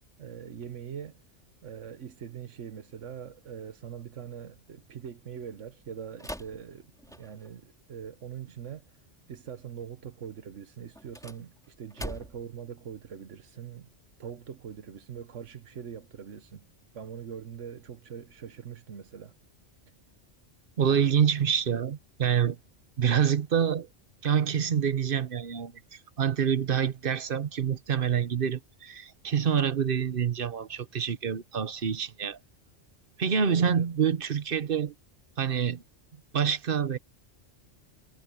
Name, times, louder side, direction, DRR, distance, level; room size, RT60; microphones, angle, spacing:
voice 1, 0.2-1.2 1.6-6.9 7.2-8.9 9.3-13.9 14.2-16.6 16.9-19.4 19.8-19.9 33.6-33.9, right 8 dB, 85° right, 1.4 m, -42 dB
sound 1, 6.2-7.6 10.9-12.6, equal, 5° left, 3.8 m, -42 dB
voice 2, 20.8-22.6 23.0-23.9 24.2-32.4 33.2-34.9 35.4-35.8 36.3-37.0, right 8 dB, 50° right, 1.1 m, -27 dB
omnidirectional pair, 1.2 m